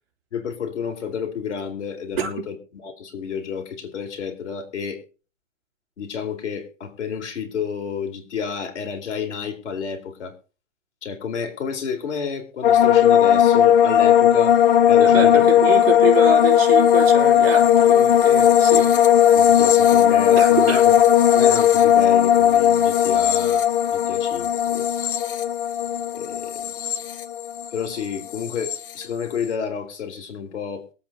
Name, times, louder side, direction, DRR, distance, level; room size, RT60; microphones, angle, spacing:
voice 1, 0.3-2.6 2.8-5.0 6.0-10.3 11.0-14.5 14.9-15.4 19.3-20.9 21.3-23.6 23.9-24.8 26.1-26.6 27.7-30.8, left 6 dB, 60° left, 5 dB, 4.1 m, -30 dB
sound 1, 12.6-27.9 28.1-28.8, left 9 dB, 40° left, 1.0 m, -16 dB
voice 2, 15.0-18.9 20.4-20.8, right 6 dB, 45° right, 0 dB, 3.3 m, -26 dB
22.5 x 8.5 x 2.9 m, 0.34 s
hypercardioid pair, 170°, 39 cm